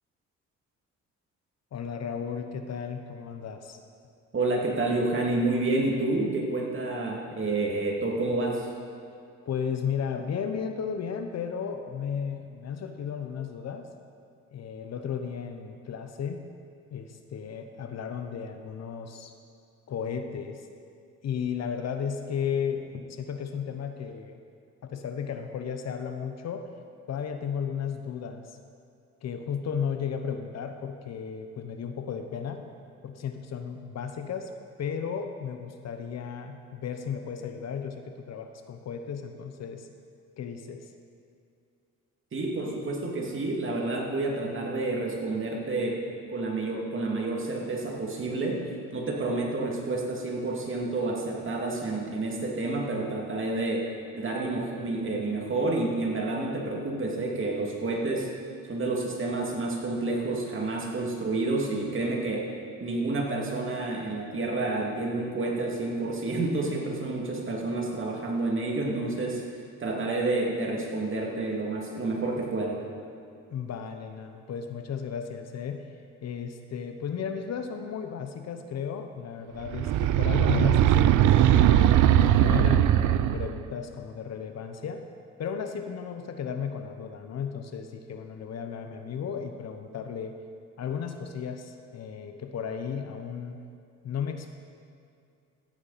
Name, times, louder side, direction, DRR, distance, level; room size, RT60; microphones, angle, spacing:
voice 1, 1.7-3.8 9.5-13.9 14.5-16.4 16.9-19.3 19.9-20.6 21.2-24.4 24.8-26.7 27.1-28.6 29.2-32.6 33.0-34.5 34.8-39.9 40.4-40.9 73.5-75.9 76.2-82.0 82.3-85.0 85.4-90.4 90.8-93.6 94.0-94.6, left 7 dB, 60° left, 6 dB, 1.0 m, -34 dB
voice 2, 4.3-8.7 42.3-46.0 46.3-48.6 48.9-53.9 54.1-58.3 58.7-62.5 62.8-69.4 69.8-72.8, right 2 dB, 40° right, -1 dB, 2.5 m, -29 dB
sound 1, 79.7-83.6, right 12 dB, 80° right, 0.5 m, -20 dB
15.5 x 8.8 x 4.2 m, 2.5 s
cardioid pair, 90°, 30 cm